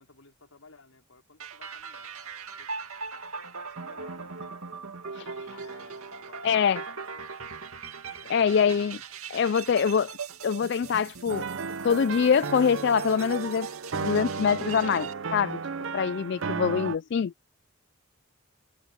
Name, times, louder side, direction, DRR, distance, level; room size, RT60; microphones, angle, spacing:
voice 1, 0.0-2.7 3.7-4.6 5.4-7.7 8.2-9.1, left 3 dB, 75° left, 4.6 m, -55 dB
sound 1, 1.4-15.1, right 5 dB, 80° right, 2.3 m, -40 dB
voice 2, 5.1-5.5 6.4-6.8 8.3-9.0 9.3-10.1 10.4-11.5 11.8-13.7 14.0-15.6 15.9-17.3, left 7 dB, 50° left, 0.3 m, -24 dB
sound 2, 11.3-17.0, right 5 dB, 60° right, 0.6 m, -34 dB
open air
head